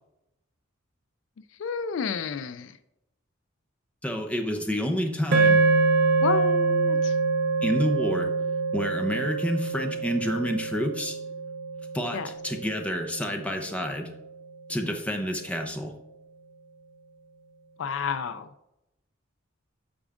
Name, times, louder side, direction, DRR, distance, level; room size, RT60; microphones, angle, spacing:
voice 1, 1.6-2.8 6.2-7.2 12.1-12.3 17.8-18.5, left 6 dB, 70° left, 13 dB, 0.4 m, -30 dB
voice 2, 4.0-5.6 7.6-8.3 8.7-11.2 11.9-14.1 14.7-15.9, equal, 5° left, 4 dB, 0.7 m, -29 dB
sound 1, 5.3-13.7, right 4 dB, 55° right, 0.6 m, -25 dB
8.4 x 6.0 x 2.5 m, 0.87 s
head